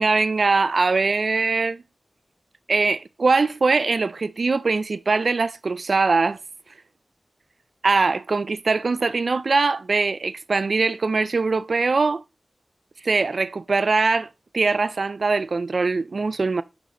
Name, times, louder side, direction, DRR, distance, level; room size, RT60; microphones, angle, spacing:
voice 1, 0.0-1.8 2.7-6.4 7.8-12.2 13.0-14.3 14.5-16.6, right 4 dB, 70° right, 0.4 m, -22 dB
6.0 x 5.1 x 3.7 m
wide cardioid pair, 80°, 0 cm